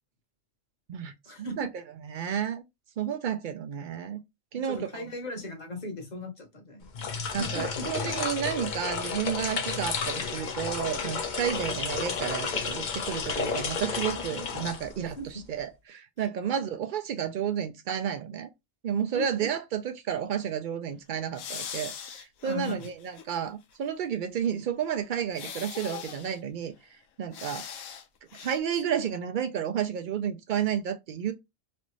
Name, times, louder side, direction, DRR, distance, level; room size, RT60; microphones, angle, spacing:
voice 1, 1.2-1.7 4.5-6.9 7.2-7.9 15.2-15.4 19.1-19.5 22.4-22.9, left 1 dB, 35° left, 1.0 m, -38 dB
voice 2, 2.0-2.6 3.0-4.2 4.5-5.0 7.3-15.2 15.5-18.5 18.8-27.7 28.3-31.3, right 8 dB, 80° right, 0.4 m, -31 dB
sound 1, 6.8-15.3, left 5 dB, 50° left, 0.5 m, -32 dB
sound 2, 21.3-23.4 23.7-23.8 25.3-26.4 27.3-28.0 28.3-28.6, left 8 dB, 85° left, 1.0 m, -40 dB
3.2 x 2.5 x 3.0 m
omnidirectional pair, 1.4 m